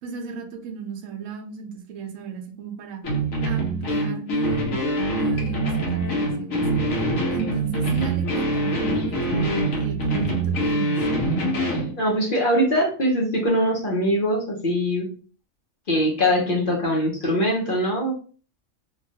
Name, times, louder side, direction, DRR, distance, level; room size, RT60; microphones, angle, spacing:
voice 1, 0.0-3.0 3.4-4.8 5.1-6.8 7.3-11.0, right 6 dB, 75° right, 3 dB, 1.0 m, -34 dB
sound 1, 3.0-11.9, right 1 dB, 85° left, 1.3 m, -24 dB
voice 2, 12.0-15.1 15.9-18.1, equal, 50° left, -2 dB, 0.8 m, -22 dB
3.0 x 2.3 x 2.7 m, 0.40 s
omnidirectional pair, 1.4 m